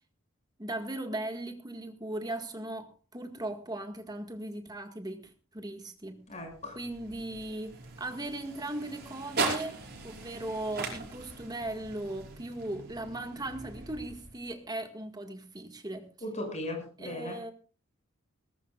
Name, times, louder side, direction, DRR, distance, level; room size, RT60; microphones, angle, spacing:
voice 1, 0.6-6.2 6.8-16.1 17.0-17.5, right 1 dB, 20° right, 1.8 m, -38 dB
voice 2, 6.3-6.8 16.2-17.4, left 1 dB, 35° left, 6.5 m, -37 dB
sound 1, 6.4-14.6, right 3 dB, 50° right, 5.2 m, -39 dB
21.0 x 19.0 x 2.4 m
head